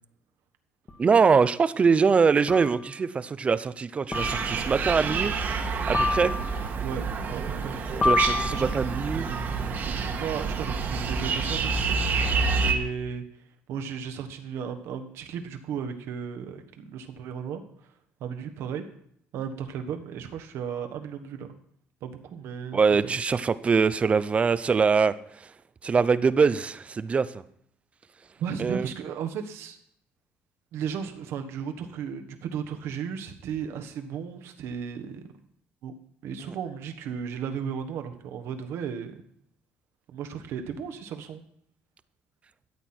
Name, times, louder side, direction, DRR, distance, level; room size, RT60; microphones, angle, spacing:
sound 1, 0.9-1.0 2.5-2.9 4.1-4.7 5.9-6.7 8.0-8.9, left 3 dB, 25° left, 1.6 m, -28 dB
voice 1, 1.0-5.3 5.9-6.3 8.0-9.3 22.7-25.5 25.8-27.4 28.6-28.9 36.4-36.5, right 5 dB, 30° right, 16 dB, 0.5 m, -23 dB
sound 2, 4.1-12.7, right 4 dB, 45° right, 1.5 m, -28 dB
voice 2, 6.8-7.7 8.5-9.5 10.0-12.1 12.6-13.2 13.7-17.6 18.2-18.8 19.3-21.5 22.0-23.2 28.4-29.8 30.7-35.3 35.8-35.9 36.2-39.2 40.1-41.4, right 7 dB, 70° right, 6 dB, 1.4 m, -35 dB
13.5 x 8.3 x 4.4 m, 0.68 s
cardioid pair, 120°, 4 cm